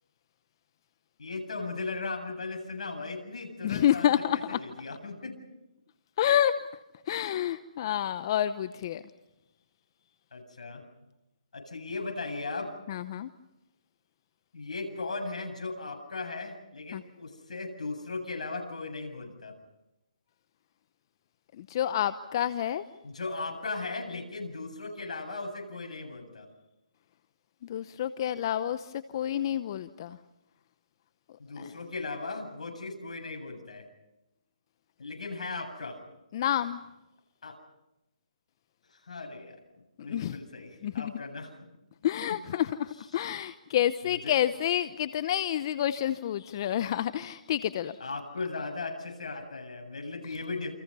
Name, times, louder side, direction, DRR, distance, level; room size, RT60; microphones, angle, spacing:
voice 1, 1.2-5.4 7.1-7.3 10.3-10.8 11.5-12.7 14.5-19.5 23.0-26.5 31.4-33.9 35.0-36.0 37.4-37.6 38.9-39.6 40.0-41.7 42.3-42.4 43.1-43.2 44.1-44.3 48.0-50.7, left 3 dB, 65° left, 3 dB, 8.0 m, -37 dB
voice 2, 3.6-4.6 6.2-6.5 7.1-9.0 12.9-13.3 16.9-17.0 21.6-22.8 27.6-30.2 31.6-31.7 36.3-36.8 40.1-40.4 40.8-41.1 42.0-48.0, left 11 dB, 35° left, 13 dB, 0.8 m, -29 dB
29.0 x 26.5 x 5.6 m, 0.95 s
hypercardioid pair, 155°, 4 cm